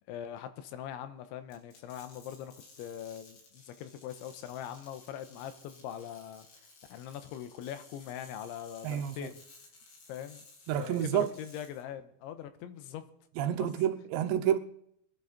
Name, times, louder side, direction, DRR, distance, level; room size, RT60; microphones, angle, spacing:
voice 1, 0.1-6.5 6.9-9.4 10.1-10.4 10.7-13.0 13.5-13.7, left 10 dB, 85° left, 3.4 m, -42 dB
sound 1, 1.5-11.8, left 3 dB, 65° left, 5.6 m, -57 dB
voice 2, 8.8-9.3 10.7-11.3 13.4-14.6, right 10 dB, 80° right, 2.9 m, -29 dB
22.5 x 10.5 x 4.2 m
omnidirectional pair, 5.3 m